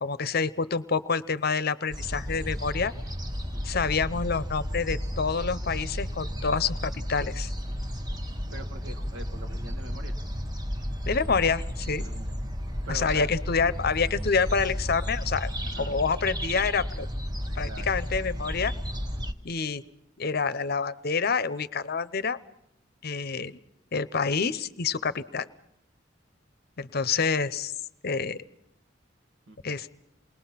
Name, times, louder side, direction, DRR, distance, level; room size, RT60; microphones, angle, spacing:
voice 1, 0.0-2.9 3.6-7.5 11.0-12.0 12.9-15.5 15.8-17.1 17.6-18.7 19.4-19.8 20.2-22.4 23.0-23.6 23.9-25.5 26.8-27.7 28.0-28.4 29.6-29.9, left 5 dB, 55° left, 15 dB, 0.7 m, -27 dB
sound 1, 1.9-19.3, equal, 20° right, 1.1 m, -33 dB
voice 2, 3.5-3.8 4.1-4.2 8.5-10.1 12.0-12.3 12.8-13.3 15.6-15.9 17.7-18.0 29.5-29.8, right 2 dB, 80° right, 7 dB, 1.6 m, -43 dB
28.5 x 20.5 x 5.8 m, 0.83 s
head